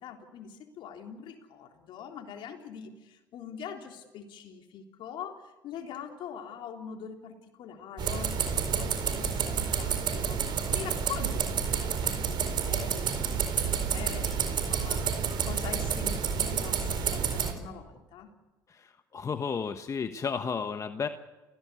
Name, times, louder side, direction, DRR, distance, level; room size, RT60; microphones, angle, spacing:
voice 1, 0.0-18.3, left 7 dB, 65° left, 3 dB, 3.5 m, -43 dB
sound 1, 8.0-17.5, right 7 dB, 55° right, 4.5 m, -29 dB
voice 2, 18.7-21.1, left 6 dB, 35° left, 8 dB, 1.2 m, -33 dB
30.0 x 16.5 x 8.4 m, 1.2 s
hypercardioid pair, 70°, 9 cm